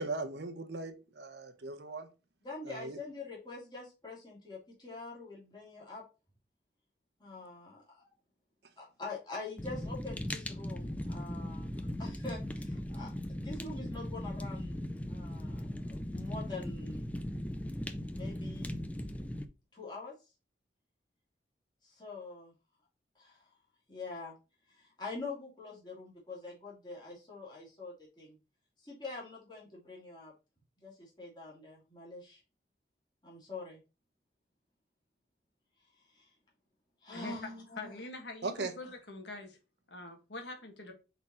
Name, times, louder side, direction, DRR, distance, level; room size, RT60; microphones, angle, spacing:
voice 1, 0.0-2.1 2.6-3.0 38.4-38.7, right 3 dB, 70° right, 1.0 m, -38 dB
voice 2, 2.4-6.0 7.2-8.1 8.8-14.8 15.1-17.1 18.1-18.7 19.7-20.1 21.8-22.5 23.1-23.5 23.9-24.3 24.7-28.4 28.8-30.3 30.8-32.4 33.2-33.8 35.8-36.3 37.0-38.0, left 3 dB, 25° left, 2.7 m, -45 dB
Fire, 9.6-19.4, left 1 dB, 10° left, 0.4 m, -38 dB
voice 3, 37.8-39.6 39.9-40.9, left 2 dB, 75° left, 1.7 m, -44 dB
6.0 x 4.1 x 4.3 m
head